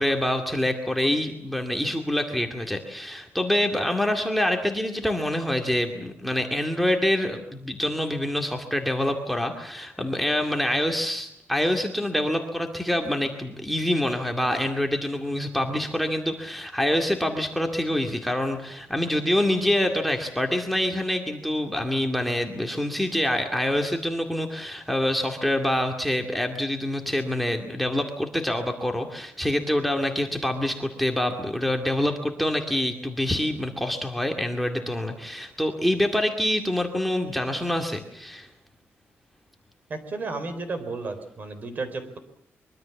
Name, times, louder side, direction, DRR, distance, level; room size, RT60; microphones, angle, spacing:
voice 1, 0.0-38.5, left 1 dB, ahead, 3 dB, 2.2 m, -26 dB
voice 2, 39.9-42.2, right 3 dB, 40° right, 10 dB, 4.4 m, -33 dB
24.5 x 23.5 x 7.2 m, 0.72 s
wide cardioid pair, 145°, 5 cm